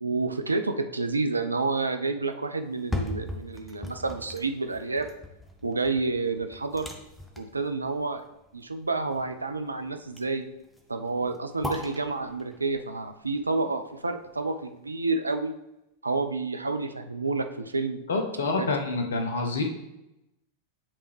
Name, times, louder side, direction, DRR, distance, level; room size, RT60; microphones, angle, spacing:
voice 1, 0.0-5.1 5.6-6.9 7.4-8.2 8.5-10.5 10.9-15.5 16.0-18.0 18.6-18.7, right 3 dB, 80° right, 7 dB, 0.4 m, -29 dB
sound 1, 2.6-14.7 15.1-15.2, left 1 dB, 5° left, 0.7 m, -40 dB
voice 2, 18.1-19.6, left 3 dB, 65° left, 4 dB, 0.8 m, -27 dB
8.4 x 3.4 x 3.2 m, 0.90 s
figure-of-eight pair, 90°, 0 cm